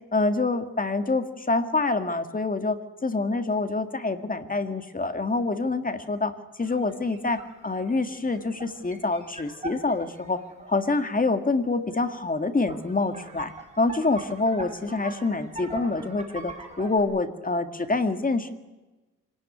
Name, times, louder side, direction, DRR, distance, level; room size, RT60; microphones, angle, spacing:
voice 1, 0.1-2.8 3.0-6.3 6.6-7.4 7.6-10.4 10.7-13.5 13.8-18.5, left 3 dB, 25° left, 8 dB, 2.0 m, -26 dB
sound 1, 6.6-10.9 11.9-12.0 12.3-17.0, right 2 dB, 20° right, 5.7 m, -41 dB
26.5 x 18.5 x 9.8 m, 1.1 s
wide cardioid pair, 110°, 32 cm